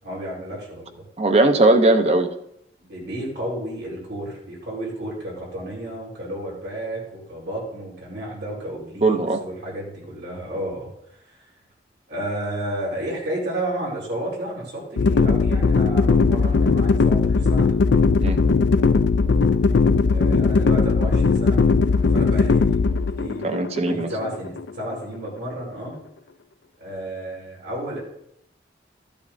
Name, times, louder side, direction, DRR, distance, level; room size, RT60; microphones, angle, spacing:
voice 1, 0.0-1.0 2.8-10.9 11.2-11.4 12.1-17.7 20.1-25.9 26.8-28.0, right 1 dB, 90° right, -5 dB, 4.3 m, -32 dB
voice 2, 1.2-2.3 9.0-9.4 18.2-18.4 23.4-24.1, right 2 dB, 35° right, 8 dB, 0.6 m, -18 dB
sound 1, 15.0-25.0, left 4 dB, 85° left, 0.4 m, -19 dB
14.0 x 8.4 x 2.6 m, 0.77 s
head